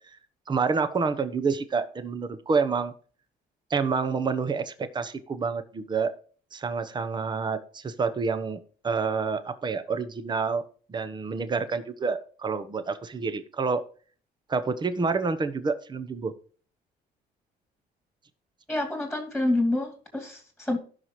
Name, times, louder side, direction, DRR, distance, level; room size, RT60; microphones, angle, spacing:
voice 1, 0.5-2.9 3.7-6.1 6.5-8.6 8.8-10.6 10.9-13.8 14.5-16.3, right 5 dB, 25° right, 12 dB, 1.0 m, -28 dB
voice 2, 18.7-20.8, left 2 dB, ahead, 4 dB, 2.6 m, -27 dB
16.5 x 5.9 x 3.1 m, 0.41 s
cardioid pair, 110°, 17 cm